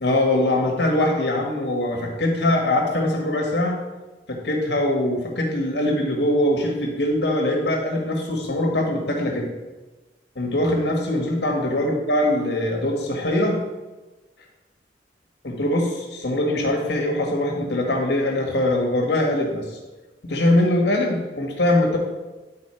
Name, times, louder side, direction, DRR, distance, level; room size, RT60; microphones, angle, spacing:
voice 1, 0.0-3.8 4.3-9.5 10.3-13.6 15.4-19.8 20.2-22.0, left 1 dB, 75° left, 1 dB, 1.7 m, -22 dB
10.5 x 4.3 x 4.4 m, 1.2 s
head